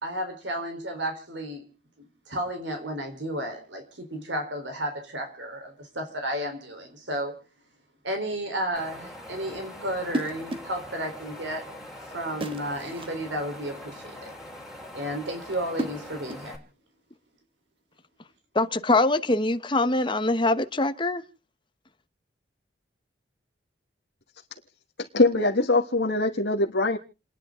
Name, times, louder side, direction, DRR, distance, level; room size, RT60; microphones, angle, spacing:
voice 1, 0.0-1.6 2.3-7.4 8.0-11.7 12.1-14.3 14.9-16.6, right 1 dB, 75° right, 3.8 m, -32 dB
Wind, 8.7-16.6, left 1 dB, ahead, 3.5 m, -43 dB
sound 1, 10.1-10.8 12.4-13.2 15.5-16.6, right 1 dB, 30° right, 1.5 m, -34 dB
voice 2, 18.5-21.2, left 2 dB, 25° left, 1.0 m, -23 dB
voice 3, 25.1-27.0, left 2 dB, 65° left, 1.5 m, -22 dB
29.5 x 10.5 x 3.7 m
head